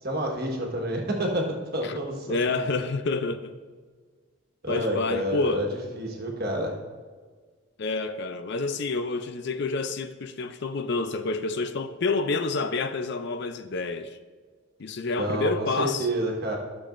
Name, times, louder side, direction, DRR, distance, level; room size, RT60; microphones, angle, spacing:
voice 1, 0.0-2.4 4.6-6.7 15.2-16.6, equal, 45° right, 1.4 m, -29 dB
voice 2, 2.3-3.5 4.7-5.7 7.8-14.2 14.8-16.1, left 3 dB, 50° left, 0.4 m, -28 dB
13.0 x 6.7 x 2.5 m
head